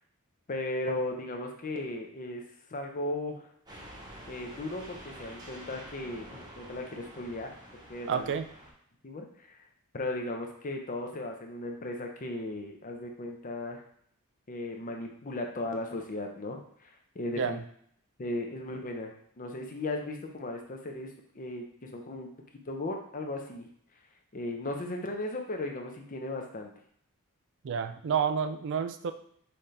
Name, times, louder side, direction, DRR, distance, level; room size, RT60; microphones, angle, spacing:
voice 1, 0.5-2.4 2.7-3.5 4.3-7.5 7.9-8.3 9.0-9.3 9.9-13.8 14.5-16.9 17.1-17.6 18.2-22.3 22.7-23.7 24.3-26.7, left 2 dB, 35° left, 3 dB, 0.6 m, -36 dB
sound 1, 3.7-8.7, equal, 20° right, 0.9 m, -48 dB
voice 2, 8.1-8.5 17.4-17.6 27.6-29.1, right 7 dB, 55° right, 9 dB, 0.4 m, -29 dB
5.7 x 2.8 x 3.3 m, 0.67 s
head